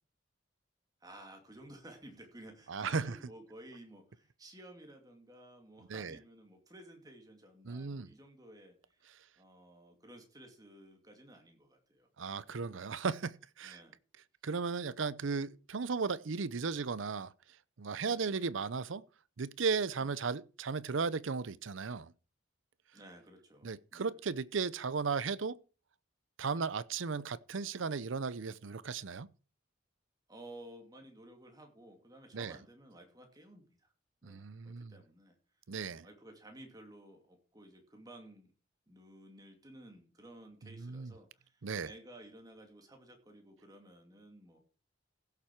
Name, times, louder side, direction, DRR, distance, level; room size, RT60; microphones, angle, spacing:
voice 1, 1.0-12.6 13.6-14.0 18.0-18.3 20.0-20.1 22.9-24.2 26.5-26.7 30.3-33.9 34.2-35.4 36.0-38.5 38.9-44.6, right 1 dB, 20° right, 2.6 m, -55 dB
voice 2, 2.7-3.1 5.9-6.2 7.7-8.1 12.2-13.8 14.4-17.3 17.8-19.0 19.4-22.1 23.6-25.6 26.4-29.3 32.3-32.5 34.2-34.9 35.7-36.1 40.8-41.1 41.6-41.9, right 5 dB, 75° right, 0.6 m, -35 dB
16.0 x 7.4 x 4.6 m
head